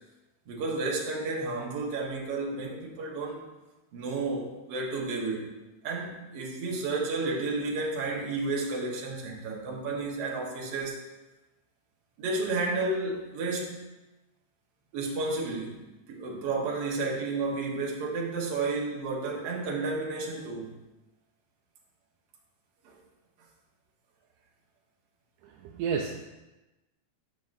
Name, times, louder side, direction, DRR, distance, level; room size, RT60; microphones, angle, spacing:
voice 1, 0.5-3.4 3.9-5.5 5.8-11.0 12.2-13.8 14.9-15.8 16.1-20.7, right 3 dB, 60° right, -3 dB, 2.1 m, -31 dB
voice 2, 25.4-26.2, right 6 dB, 80° right, 1 dB, 1.9 m, -31 dB
9.3 x 6.6 x 2.6 m, 1.1 s
omnidirectional pair, 3.5 m